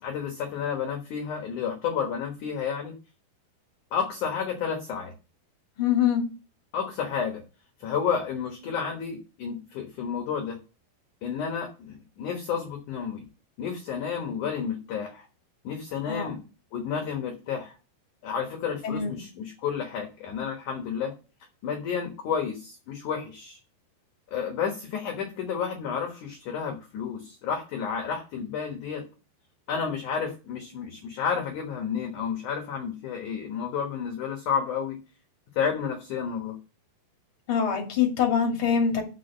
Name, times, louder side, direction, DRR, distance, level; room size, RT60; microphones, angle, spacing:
voice 1, 0.0-2.9 3.9-5.1 6.7-7.4 7.8-10.6 11.2-13.2 13.6-15.3 15.6-16.4 16.7-17.8 18.2-21.1 21.6-23.6 24.3-29.0 29.7-35.0 35.6-36.6, left 7 dB, 65° left, 3 dB, 2.2 m, -31 dB
voice 2, 5.8-6.2 16.1-16.4 18.8-19.1 37.5-39.0, left 7 dB, 35° left, 1 dB, 2.5 m, -24 dB
6.1 x 6.0 x 6.9 m, 0.33 s
omnidirectional pair, 5.0 m